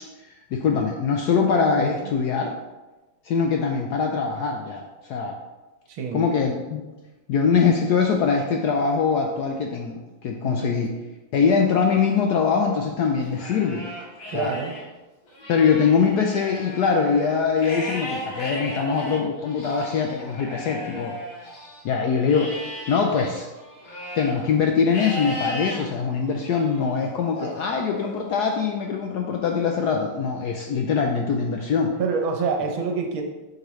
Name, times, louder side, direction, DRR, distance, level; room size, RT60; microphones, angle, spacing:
voice 1, 0.3-2.6 3.2-5.4 6.1-6.8 7.3-10.9 11.3-13.9 14.3-14.5 15.5-21.2 21.8-22.6 22.9-23.5 24.2-32.0, left 5 dB, 75° left, 2 dB, 0.9 m, -23 dB
voice 2, 1.7-2.1 5.9-6.4 10.4-10.7 14.3-14.8 32.0-33.2, right 5 dB, 75° right, 3 dB, 1.6 m, -27 dB
Livestock farm animals working animals, 13.2-14.8 15.3-21.8 22.3-24.4 24.9-25.8 26.4-26.8 27.3-28.4, equal, 55° left, 2.1 m, -36 dB
7.9 x 5.2 x 3.1 m, 1.1 s
omnidirectional pair, 2.2 m